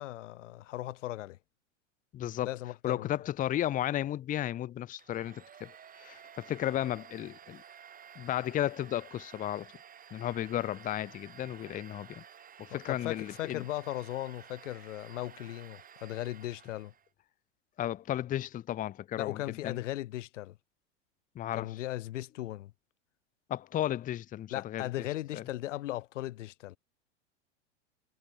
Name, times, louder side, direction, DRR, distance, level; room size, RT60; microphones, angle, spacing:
voice 1, 0.0-1.4 2.4-3.1 12.7-16.9 19.2-20.6 21.5-22.7 24.5-26.8, left 15 dB, 75° left, 0.7 m, -37 dB
voice 2, 2.1-2.5 2.8-5.7 6.0-7.6 8.2-9.7 10.1-12.2 12.6-13.6 17.8-19.8 21.4-21.7 23.5-24.9 25.3-25.4, left 12 dB, 20° left, 0.6 m, -34 dB
Domestic sounds home sounds, 5.0-17.1, right 8 dB, 25° right, 2.2 m, -53 dB
hypercardioid pair, 105°, 37 cm